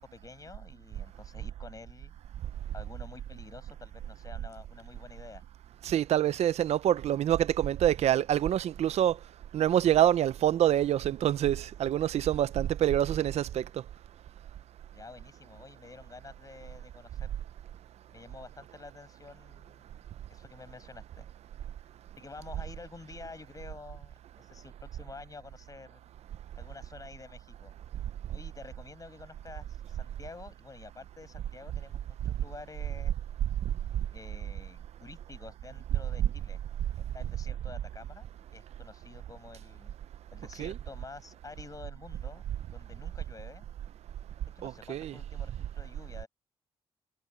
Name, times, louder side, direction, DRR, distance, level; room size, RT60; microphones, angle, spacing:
voice 1, 0.0-2.1 2.7-5.4 14.9-17.3 18.1-20.0 20.3-21.3 22.2-26.0 26.6-27.7 28.3-33.1 34.1-36.6 37.0-38.3 38.5-40.0 40.3-42.4 42.7-43.7 44.5-46.3, left 4 dB, 35° left, 6.7 m, -49 dB
voice 2, 5.8-9.2 9.5-13.6 40.6-40.7 44.6-45.1, right 11 dB, 80° right, 0.6 m, -26 dB
cardioid pair, 80°, 11 cm